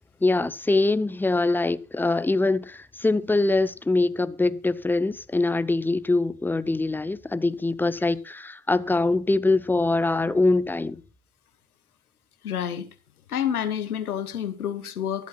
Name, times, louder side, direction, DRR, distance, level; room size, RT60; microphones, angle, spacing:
voice 1, 0.2-11.0, left 2 dB, 5° left, 0.6 m, -23 dB
voice 2, 12.4-12.9 13.3-15.3, left 9 dB, 85° left, 1.5 m, -28 dB
24.0 x 8.3 x 2.3 m
hypercardioid pair, 85°, 43 cm